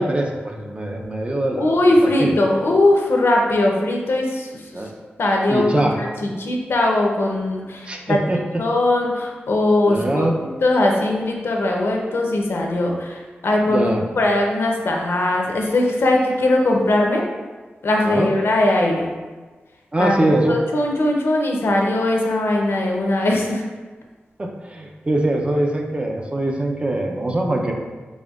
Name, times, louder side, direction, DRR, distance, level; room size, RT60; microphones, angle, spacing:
voice 1, 0.0-1.7 2.2-2.3 4.7-4.9 5.5-6.0 7.9-8.4 9.9-10.3 13.7-14.0 18.1-18.3 19.9-20.5 24.4-27.7, right 1 dB, 30° right, 1 dB, 0.5 m, -22 dB
voice 2, 1.6-4.9 5.2-8.2 8.6-10.3 10.6-17.2 17.8-19.1 20.0-23.7, left 1 dB, 75° left, 0 dB, 0.6 m, -20 dB
4.2 x 3.7 x 2.3 m, 1.3 s
wide cardioid pair, 95°, 4 cm